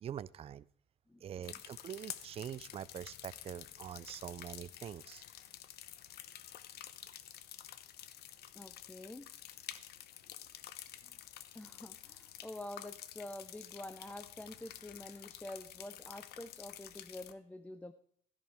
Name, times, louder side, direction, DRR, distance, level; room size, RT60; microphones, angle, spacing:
voice 1, 0.0-0.6 1.2-5.2, right 10 dB, 35° right, 0.4 m, -44 dB
voice 2, 1.1-1.6 8.5-9.3 11.0-11.2 11.5-17.9, left 1 dB, 10° left, 0.6 m, -48 dB
sound 1, 1.4-17.3, left 11 dB, 70° left, 0.9 m, -50 dB
13.0 x 10.5 x 3.5 m
cardioid pair, 110°, 17 cm